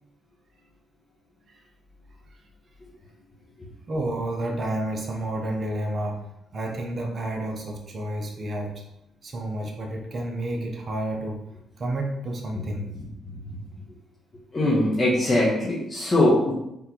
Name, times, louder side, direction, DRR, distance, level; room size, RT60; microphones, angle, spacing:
voice 1, 3.9-6.2 6.5-8.8 9.2-11.4 11.8-12.9, right 1 dB, 45° right, 1 dB, 0.8 m, -30 dB
voice 2, 14.5-16.5, left 1 dB, 30° left, -7 dB, 1.1 m, -21 dB
3.8 x 3.4 x 3.0 m, 0.84 s
cardioid pair, 90°, 0 cm